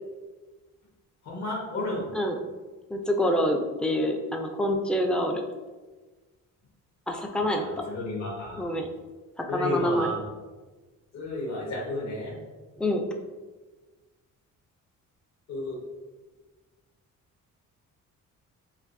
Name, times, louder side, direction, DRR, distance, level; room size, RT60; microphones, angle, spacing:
voice 1, 1.2-2.1 7.3-8.7 9.5-10.2 11.1-12.3 15.5-15.8, left 1 dB, 55° left, -4 dB, 1.4 m, -32 dB
voice 2, 2.9-5.4 7.1-7.6 8.6-8.9 9.5-10.1 12.8-13.0, left 1 dB, 5° left, 2 dB, 0.4 m, -26 dB
7.2 x 2.5 x 2.6 m, 1.3 s
cardioid pair, 125°, 32 cm